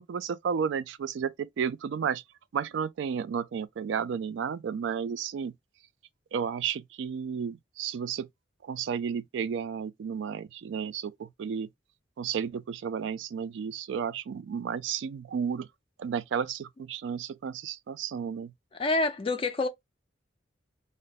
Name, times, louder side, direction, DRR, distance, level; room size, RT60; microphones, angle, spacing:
voice 1, 0.0-2.2 2.5-5.5 6.3-8.3 8.6-11.7 12.2-15.7 16.0-18.5, right 7 dB, 65° right, 0.3 m, -32 dB
voice 2, 18.7-19.7, left 3 dB, 30° left, 0.3 m, -27 dB
2.5 x 2.1 x 3.9 m
head